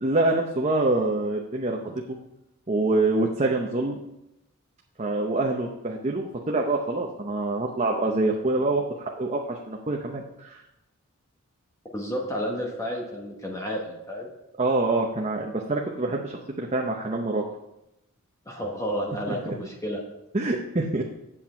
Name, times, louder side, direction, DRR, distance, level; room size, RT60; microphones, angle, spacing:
voice 1, 0.0-2.0 2.7-4.0 5.0-10.6 14.6-17.4 19.3-19.5 20.3-21.0, right 2 dB, 30° right, 1 dB, 0.7 m, -26 dB
voice 2, 11.9-14.3 18.5-20.0, equal, 15° left, -1 dB, 1.2 m, -31 dB
8.2 x 7.5 x 4.4 m, 0.89 s
head